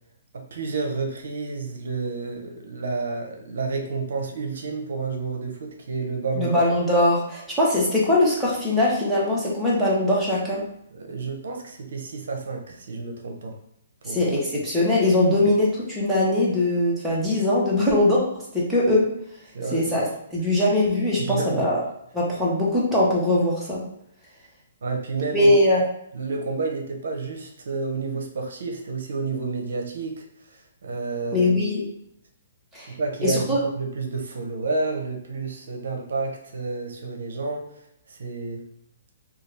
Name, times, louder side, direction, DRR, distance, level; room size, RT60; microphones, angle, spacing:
voice 1, 0.3-6.6 10.9-13.6 14.0-14.3 19.5-19.9 20.5-20.6 21.2-21.8 24.8-25.5 26.1-31.5 32.9-33.4 33.7-37.7 38.1-38.6, right 4 dB, 70° right, 2 dB, 0.6 m, -30 dB
voice 2, 6.4-10.6 14.0-19.1 19.7-21.8 22.1-23.8 25.3-25.8 31.3-31.9 32.7-32.9 33.2-33.6, left 1 dB, ahead, -8 dB, 0.9 m, -21 dB
2.7 x 2.3 x 3.2 m, 0.74 s
hypercardioid pair, 150°, 0 cm